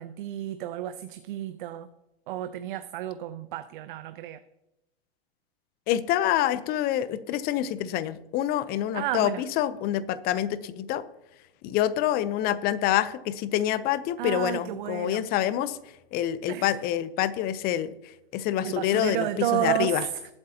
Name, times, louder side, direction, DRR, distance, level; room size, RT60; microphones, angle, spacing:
voice 1, 0.0-1.9 2.3-4.4 8.9-9.4 14.2-15.2 16.5-16.7 18.6-20.1, right 13 dB, 50° right, 11 dB, 0.7 m, -31 dB
voice 2, 5.9-11.0 11.6-15.8 16.1-17.9 18.3-20.0, left 12 dB, 30° left, 15 dB, 0.7 m, -26 dB
20.5 x 7.9 x 2.9 m, 0.93 s
hypercardioid pair, 120°, 32 cm